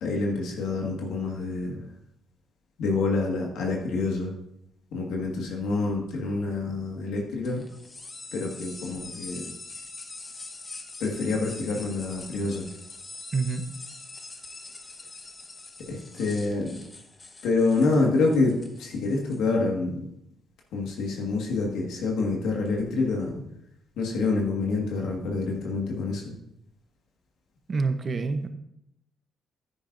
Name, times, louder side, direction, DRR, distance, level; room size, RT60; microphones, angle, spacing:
voice 1, 0.0-1.8 2.8-4.3 4.9-7.6 8.3-9.4 11.0-12.6 15.9-16.8 17.4-20.0 20.7-23.3 24.0-26.3, left 3 dB, 85° left, -1 dB, 1.7 m, -27 dB
sound 1, 7.4-19.4, left 3 dB, 35° left, 1.1 m, -43 dB
voice 2, 13.3-13.6 27.7-28.5, right 4 dB, 40° right, 8 dB, 0.9 m, -27 dB
10.0 x 9.9 x 2.6 m, 0.78 s
cardioid pair, 90°, 0 cm